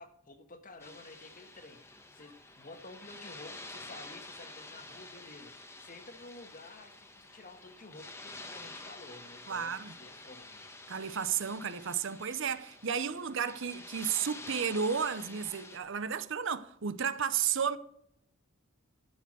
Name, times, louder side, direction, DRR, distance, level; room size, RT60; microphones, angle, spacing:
voice 1, 0.0-10.8, left 2 dB, 40° left, 1.4 m, -52 dB
sound 1, 0.8-15.8, left 2 dB, 15° left, 1.1 m, -49 dB
voice 2, 9.5-9.9 10.9-17.8, right 7 dB, 60° right, 0.7 m, -33 dB
12.0 x 7.0 x 6.3 m
head